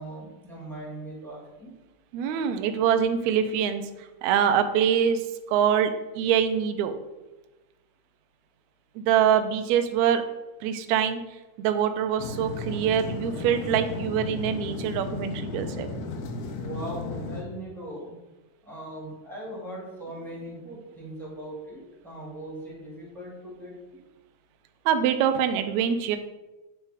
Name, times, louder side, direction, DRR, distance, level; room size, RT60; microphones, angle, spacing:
voice 1, 0.0-1.7 16.5-18.1 18.6-23.7, right 1 dB, ahead, -6 dB, 1.4 m, -39 dB
voice 2, 2.1-3.8 4.2-6.9 9.0-10.2 10.6-11.2 11.6-15.9 24.9-26.2, right 8 dB, 80° right, 7 dB, 1.8 m, -24 dB
sound 1, 12.2-17.4, left 3 dB, 75° left, 2.0 m, -34 dB
8.4 x 3.3 x 4.8 m, 1.1 s
omnidirectional pair, 3.6 m